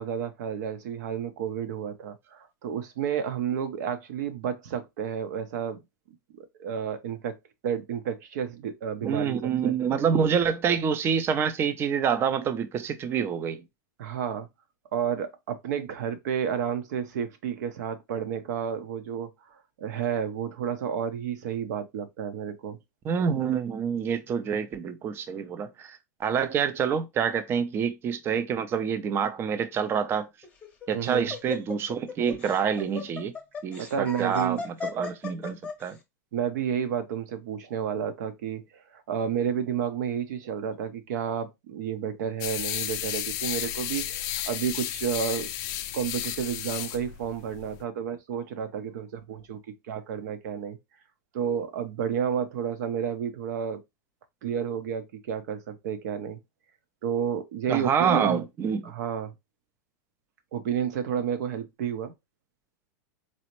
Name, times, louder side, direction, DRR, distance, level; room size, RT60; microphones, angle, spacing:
voice 1, 0.0-5.8 6.3-7.3 7.6-9.4 9.6-9.7 14.0-14.5 14.9-19.3 19.8-22.8 30.9-31.3 33.8-34.6 36.3-38.6 38.9-45.5 45.9-49.6 49.9-50.8 51.3-53.8 54.4-56.4 57.0-58.5 58.8-59.3 60.5-62.1, right 8 dB, 65° right, 0.7 m, -31 dB
voice 2, 9.0-13.6 23.0-30.3 30.9-33.3 33.6-36.0 57.7-58.9, right 7 dB, 25° right, 0.4 m, -27 dB
Laughter, 30.4-35.9, left 5 dB, 15° left, 0.8 m, -37 dB
sound 1, 42.4-47.8, left 12 dB, 40° left, 0.4 m, -33 dB
4.1 x 2.0 x 2.9 m
supercardioid pair, 135°, 10 cm